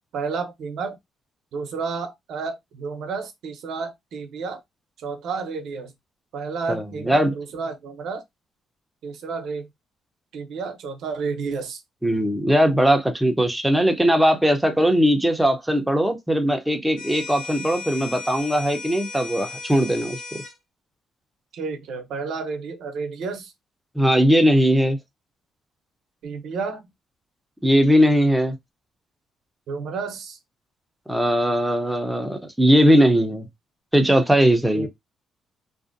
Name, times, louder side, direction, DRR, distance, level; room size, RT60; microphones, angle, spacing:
voice 1, 0.1-1.0 1.5-4.6 5.0-5.9 6.3-8.2 9.0-9.7 10.3-11.8 21.5-23.5 26.2-26.9 29.7-30.4 34.7-34.9, right 5 dB, 75° right, 0.7 m, -31 dB
voice 2, 6.7-7.3 12.0-20.2 24.0-25.0 27.6-28.6 31.1-33.5 33.9-34.9, equal, 5° right, 0.6 m, -19 dB
sound 1, 17.0-20.6, left 4 dB, 70° left, 0.9 m, -36 dB
2.5 x 2.1 x 2.5 m
cardioid pair, 90°, 0 cm